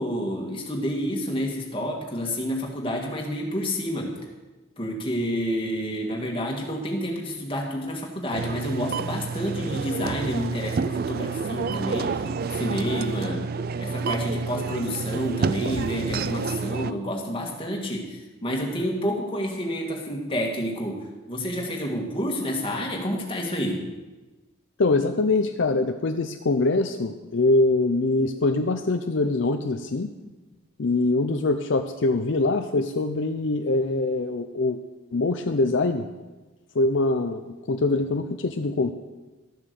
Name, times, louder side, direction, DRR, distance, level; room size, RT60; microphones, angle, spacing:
voice 1, 0.0-4.2 4.8-13.5 13.8-23.9, equal, 25° left, 0 dB, 2.0 m, -29 dB
sound 1, 8.3-16.9, right 4 dB, 45° right, 0.4 m, -29 dB
voice 2, 24.8-30.1 30.8-34.8 35.1-36.1 36.7-38.9, left 2 dB, 60° left, 6 dB, 0.5 m, -23 dB
13.0 x 7.2 x 6.9 m, 1.2 s
head